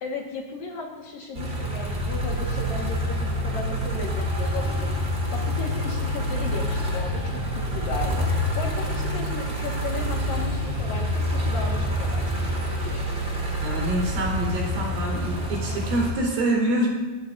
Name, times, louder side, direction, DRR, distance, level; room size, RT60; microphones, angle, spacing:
voice 1, 0.0-7.4 7.7-12.5, left 4 dB, 60° left, 0 dB, 3.0 m, -35 dB
sound 1, 1.3-16.1, equal, 15° right, 3.2 m, -27 dB
voice 2, 13.6-16.9, right 1 dB, 85° right, -2 dB, 6.8 m, -26 dB
25.0 x 14.5 x 2.7 m, 1.3 s
omnidirectional pair, 5.3 m